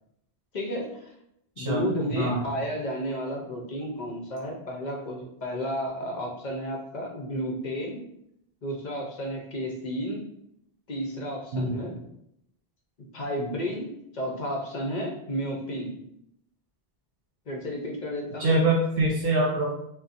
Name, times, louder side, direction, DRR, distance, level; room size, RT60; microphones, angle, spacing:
voice 1, 0.5-1.1 1.6-8.0 8.6-10.2 10.9-11.9 13.1-16.0 17.5-18.6, equal, 55° left, -1 dB, 0.6 m, -32 dB
voice 2, 2.1-2.5 11.5-11.8 18.4-19.6, right 2 dB, 70° right, -3 dB, 0.8 m, -24 dB
4.1 x 2.1 x 2.4 m, 0.76 s
omnidirectional pair, 1.0 m